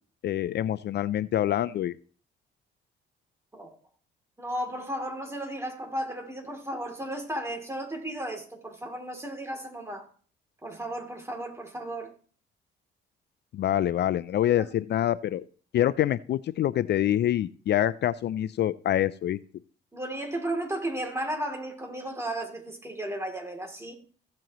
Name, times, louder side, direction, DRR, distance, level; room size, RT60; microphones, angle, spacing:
voice 1, 0.2-1.9 13.5-15.4 15.7-19.4, left 12 dB, 60° left, 0.4 m, -26 dB
voice 2, 4.4-10.1 10.6-12.1 14.6-14.7 19.9-24.0, right 1 dB, 15° right, 3.0 m, -34 dB
15.0 x 7.6 x 3.1 m
cardioid pair, 90°, 20 cm